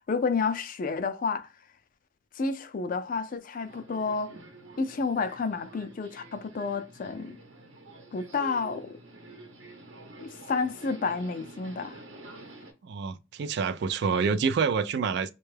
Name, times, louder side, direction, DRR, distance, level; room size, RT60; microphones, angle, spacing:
voice 1, 0.1-1.5 2.3-4.3 4.8-7.4 8.1-9.0 10.2-12.0, left 4 dB, 45° left, 0.4 m, -30 dB
Subway metro underground, 3.6-12.7, right 2 dB, 75° right, 0.9 m, -48 dB
voice 2, 12.8-15.3, right 5 dB, 55° right, 0.3 m, -27 dB
4.3 x 2.3 x 3.2 m
head